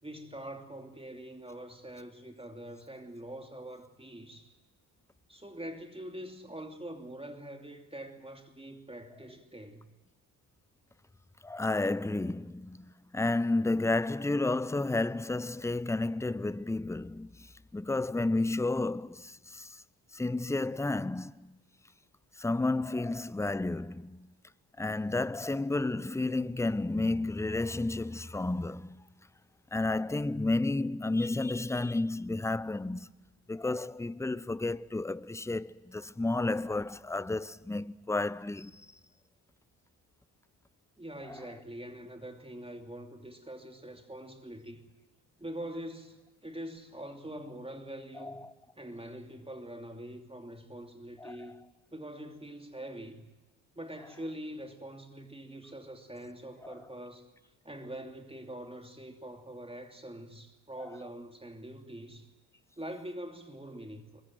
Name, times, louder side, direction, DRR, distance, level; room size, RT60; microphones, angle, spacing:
voice 1, 0.0-4.5 5.3-9.9 41.0-44.9 45.4-48.4 48.8-51.6 51.9-53.3 53.7-57.3 57.6-62.3 62.8-64.2, right 1 dB, 10° right, 2.9 m, -44 dB
voice 2, 11.4-19.8 20.1-21.6 22.4-24.3 24.8-29.0 29.7-33.1 33.5-38.8 41.3-41.4 48.2-48.4 51.2-51.4 56.6-56.7, left 2 dB, 5° left, 0.7 m, -31 dB
22.5 x 21.5 x 7.7 m
hypercardioid pair, 50°, 47 cm